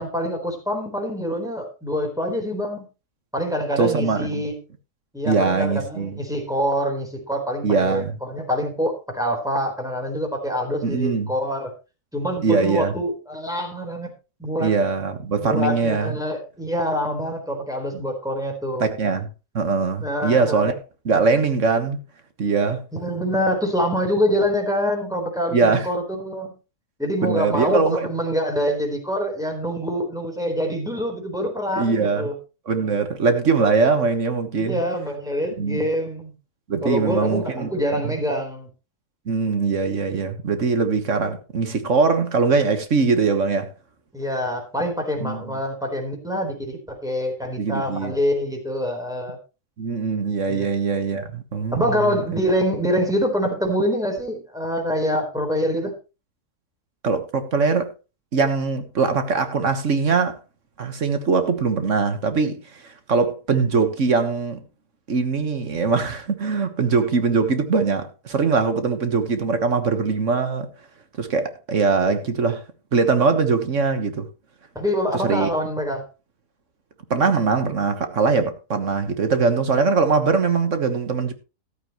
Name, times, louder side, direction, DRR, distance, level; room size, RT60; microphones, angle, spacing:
voice 1, 0.0-2.9 3.3-4.6 5.1-11.7 12.1-14.1 14.4-14.7 15.4-18.9 20.0-20.7 22.9-26.6 27.0-32.4 34.5-36.3 36.8-38.7 44.1-49.4 50.5-50.7 51.7-55.9 74.7-76.1, equal, ahead, 3.9 m, -25 dB
voice 2, 3.8-4.5 5.3-6.2 7.6-8.2 10.8-11.3 12.4-12.9 14.6-16.2 18.8-19.3 19.5-20.7 21.1-22.0 22.4-22.8 25.5-25.9 27.2-28.1 31.7-32.3 32.7-34.8 35.6-35.9 36.7-38.2 39.3-43.7 45.2-45.4 47.6-48.2 49.8-52.2 57.0-57.9 58.3-60.4 60.8-64.6 65.1-70.7 71.2-72.6 72.9-74.3 75.1-75.5 77.1-81.3, right 4 dB, 50° right, 1.6 m, -22 dB
14.0 x 12.0 x 3.1 m
omnidirectional pair, 1.7 m